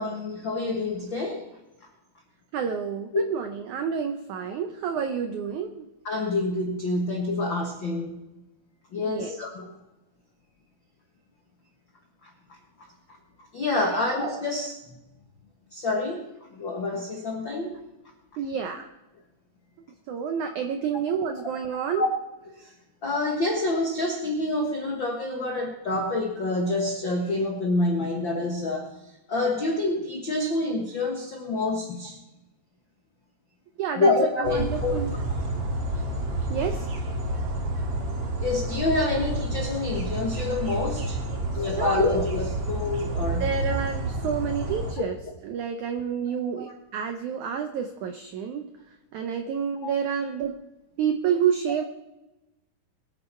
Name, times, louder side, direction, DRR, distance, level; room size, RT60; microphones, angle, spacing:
voice 1, 0.0-1.4 3.1-3.2 6.0-8.2 8.9-9.7 12.2-12.3 13.5-14.8 15.7-16.2 16.5-17.8 21.9-22.1 22.5-22.7 23.0-28.9 29.3-32.2 33.9-34.9 38.4-41.2 41.5-43.5 46.5-46.6 49.8-49.9, left 2 dB, 85° left, 1 dB, 1.0 m, -27 dB
voice 2, 2.5-5.9 9.0-9.3 13.9-14.1 18.4-18.9 20.1-22.1 33.8-34.1 34.4-35.1 36.5-36.9 41.8-42.1 43.4-45.2 45.4-48.7 49.1-50.6 51.0-51.9, right 7 dB, 85° right, 6 dB, 1.7 m, -29 dB
sound 1, 34.4-44.9, right 1 dB, 45° right, 2.3 m, -30 dB
21.5 x 9.1 x 4.4 m, 0.99 s
omnidirectional pair, 4.5 m